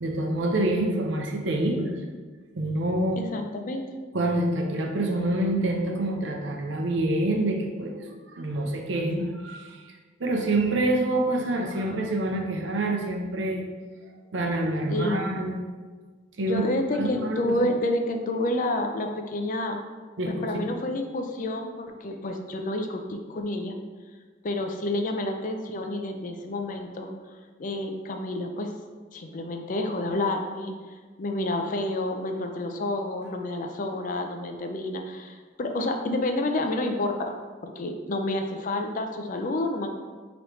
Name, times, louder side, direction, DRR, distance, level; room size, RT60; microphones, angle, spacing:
voice 1, 0.0-1.9 2.6-3.2 4.1-8.0 8.3-9.8 10.2-13.6 14.3-15.6 16.4-16.7 17.0-17.7 20.2-20.7, right 1 dB, 75° right, 2 dB, 0.6 m, -26 dB
voice 2, 3.2-3.8 14.9-15.3 16.4-19.8 20.4-23.7 24.4-27.1 27.6-28.7 29.1-30.7 31.2-37.3 37.8-39.9, left 1 dB, 45° left, 4 dB, 0.4 m, -29 dB
5.0 x 3.0 x 3.1 m, 1.4 s
head